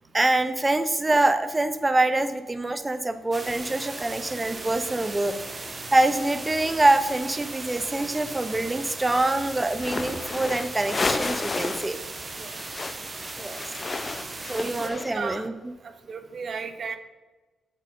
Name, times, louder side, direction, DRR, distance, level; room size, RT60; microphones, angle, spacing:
voice 1, 0.1-5.4 5.9-12.0 13.4-13.6 14.5-15.5, right 2 dB, 25° right, 10 dB, 0.6 m, -25 dB
sound 1, 3.3-14.9, right 3 dB, 40° right, 1.2 m, -37 dB
sound 2, 9.7-12.0 12.2-15.4, left 3 dB, 40° left, 0.5 m, -32 dB
voice 2, 14.8-15.5 16.1-17.0, right 5 dB, 60° right, 9 dB, 0.7 m, -34 dB
8.3 x 4.2 x 5.3 m, 1.2 s
supercardioid pair, 55°, 0 cm